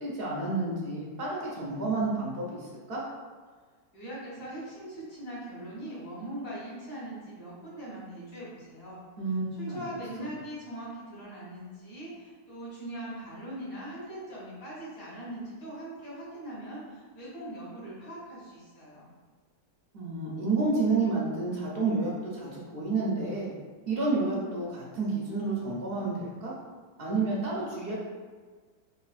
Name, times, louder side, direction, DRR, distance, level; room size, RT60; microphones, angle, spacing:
voice 1, 0.0-3.0 9.2-9.9 19.9-23.5 23.9-26.5 27.0-27.9, right 3 dB, 55° right, -5 dB, 0.7 m, -30 dB
voice 2, 3.9-9.0 9.6-19.1, right 1 dB, 65° left, -9 dB, 2.1 m, -41 dB
4.1 x 3.2 x 2.4 m, 1.5 s
omnidirectional pair, 1.9 m